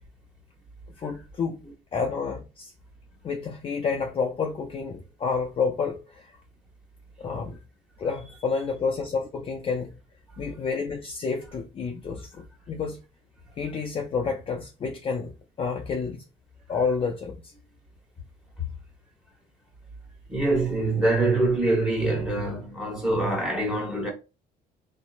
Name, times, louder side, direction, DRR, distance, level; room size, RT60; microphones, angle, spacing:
voice 1, 1.0-1.6 1.9-2.7 3.2-6.3 7.2-7.6 8.0-9.9 10.4-13.0 13.6-15.3 15.6-16.2 16.7-17.5, left 5 dB, 35° left, 0.4 m, -29 dB
voice 2, 10.3-10.6 13.4-13.6 18.6-18.7 20.3-24.1, right 2 dB, 5° right, 1.1 m, -25 dB
2.7 x 2.1 x 2.4 m
cardioid pair, 110°, 17 cm